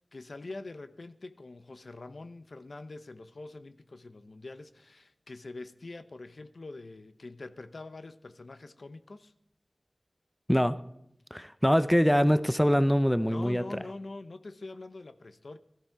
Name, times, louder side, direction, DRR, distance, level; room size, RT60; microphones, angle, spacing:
voice 1, 0.1-9.3 13.2-15.6, left 2 dB, 75° left, 0.7 m, -44 dB
voice 2, 10.5-10.8 11.3-13.8, equal, 5° left, 0.6 m, -24 dB
17.0 x 13.5 x 4.6 m
wide cardioid pair, 65°, 0 cm